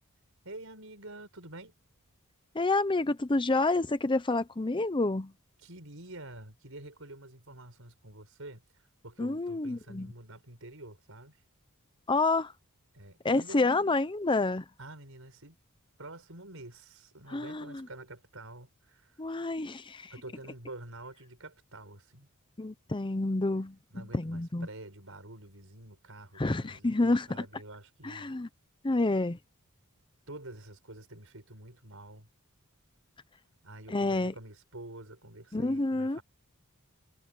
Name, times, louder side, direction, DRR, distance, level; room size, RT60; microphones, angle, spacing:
voice 1, 0.4-1.7 5.6-8.6 9.0-11.4 12.9-14.0 14.8-15.6 16.0-19.2 20.1-22.3 23.9-28.4 30.3-32.3 33.6-36.2, right 2 dB, 65° right, 7.2 m, -48 dB
voice 2, 2.5-5.3 9.2-10.1 12.1-12.5 13.2-14.6 17.3-17.9 19.2-20.1 22.6-23.8 24.1-24.7 26.4-27.4 28.0-28.5 28.8-29.4 33.9-34.3 35.5-36.2, left 2 dB, 20° left, 0.7 m, -28 dB
head